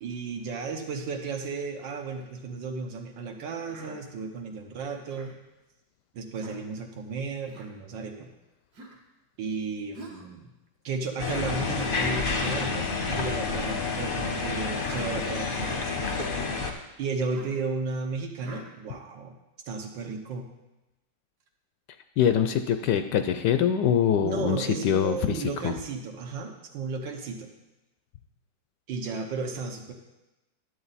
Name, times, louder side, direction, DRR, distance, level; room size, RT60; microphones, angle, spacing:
voice 1, 0.0-5.3 6.1-8.3 9.4-10.5 10.8-15.9 17.0-19.3 19.7-20.5 24.2-27.5 28.9-29.9, right 4 dB, 70° right, 3 dB, 1.7 m, -34 dB
Human voice, 3.7-4.0 5.1-5.4 6.3-6.6 7.5-7.7 8.7-9.0 9.9-10.3 11.2-11.5 12.3-12.6 13.5-13.8 14.8-15.1 16.0-16.3 17.3-17.6 18.4-18.7, right 2 dB, 55° right, 1.7 m, -46 dB
sound 1, 11.2-16.7, left 4 dB, 40° left, 0.8 m, -29 dB
voice 2, 22.2-25.7, left 9 dB, 75° left, 8 dB, 1.1 m, -24 dB
11.0 x 8.0 x 4.1 m, 1.0 s
omnidirectional pair, 2.1 m